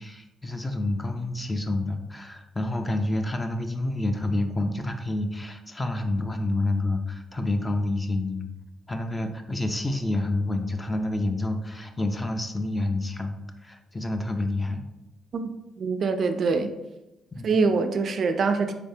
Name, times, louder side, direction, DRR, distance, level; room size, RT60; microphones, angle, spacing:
voice 1, 0.0-8.5 8.9-14.8 17.3-17.5, left 2 dB, 15° left, 6 dB, 0.4 m, -28 dB
voice 2, 15.8-16.7 17.4-18.7, right 4 dB, 55° right, 8 dB, 0.3 m, -24 dB
3.9 x 3.4 x 2.7 m, 0.97 s
cardioid pair, 90°, 0 cm